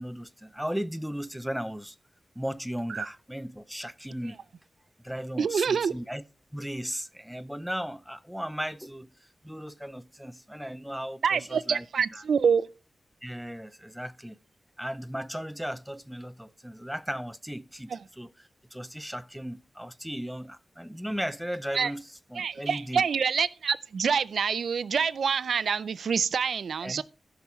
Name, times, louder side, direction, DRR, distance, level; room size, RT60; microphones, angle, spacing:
voice 1, 0.0-2.0 2.4-4.4 5.0-6.2 6.5-9.1 9.4-11.9 12.1-12.2 13.2-14.4 14.8-23.0 26.8-27.0, equal, ahead, 0.5 m, -36 dB
voice 2, 5.4-5.9 11.2-12.7 17.9-18.0 21.7-21.9 22.4-27.0, right 6 dB, 90° right, 0.4 m, -26 dB
16.5 x 5.9 x 3.1 m
wide cardioid pair, 145°, 0 cm